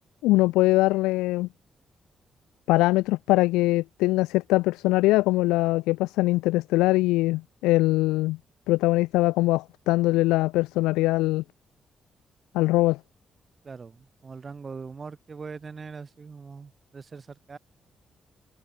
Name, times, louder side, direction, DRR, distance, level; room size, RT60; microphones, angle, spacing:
voice 1, 0.2-1.5 2.7-8.4 8.7-11.4 12.5-13.0, left 19 dB, 80° left, 1.0 m, -22 dB
voice 2, 13.6-17.6, right 5 dB, 45° right, 5.9 m, -41 dB
hypercardioid pair, 45°, 0 cm